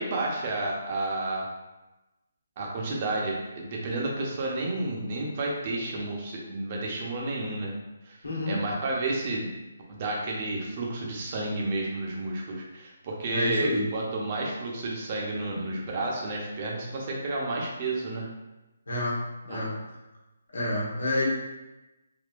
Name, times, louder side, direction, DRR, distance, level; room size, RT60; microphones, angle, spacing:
voice 1, 0.0-1.4 2.6-7.7 8.1-8.2 8.5-9.5 9.9-18.3 19.5-19.7, right 2 dB, 40° right, -2 dB, 0.8 m, -31 dB
voice 2, 8.2-8.6 13.3-13.9 18.9-19.8 20.5-21.3, left 1 dB, 80° left, -5 dB, 1.2 m, -28 dB
3.7 x 2.7 x 2.5 m, 1.0 s
figure-of-eight pair, 150°, 0 cm